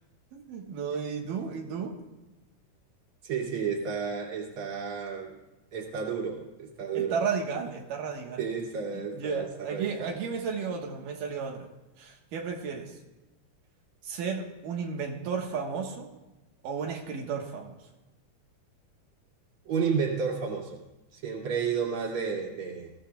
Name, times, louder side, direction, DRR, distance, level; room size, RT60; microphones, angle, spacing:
voice 1, 0.3-1.9 6.9-8.5 9.1-11.7 12.0-12.9 14.0-16.1 16.6-17.8, right 6 dB, 85° right, 1 dB, 3.0 m, -33 dB
voice 2, 3.2-5.3 5.7-7.3 8.4-10.2 19.6-20.8 21.1-22.9, right 6 dB, 45° right, -2 dB, 3.1 m, -31 dB
22.0 x 15.5 x 2.3 m, 1.0 s
omnidirectional pair, 3.7 m